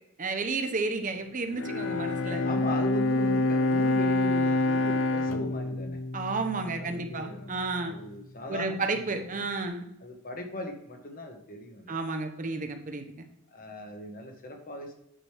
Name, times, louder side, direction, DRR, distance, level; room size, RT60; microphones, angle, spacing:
voice 1, 0.2-2.4 6.1-8.0 8.5-9.8 11.9-13.1, right 3 dB, 35° right, 6 dB, 0.8 m, -32 dB
Bowed string instrument, 1.5-7.1, left 2 dB, 60° left, 0.7 m, -27 dB
voice 2, 2.4-6.0 6.8-9.5 10.0-12.0 13.5-14.9, left 1 dB, 40° left, 3 dB, 1.3 m, -38 dB
8.8 x 6.1 x 3.4 m, 0.78 s
head